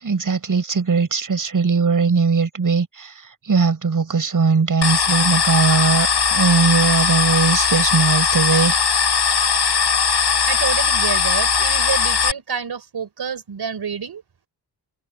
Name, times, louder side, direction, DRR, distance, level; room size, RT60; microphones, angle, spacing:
voice 1, 0.0-3.1 3.5-8.8, right 5 dB, 55° right, 6.3 m, -19 dB
sound 1, 4.8-12.3, left 6 dB, 85° left, 5.8 m, -19 dB
voice 2, 10.5-14.2, right 6 dB, 75° right, 4.6 m, -28 dB
wide cardioid pair, 95°, 39 cm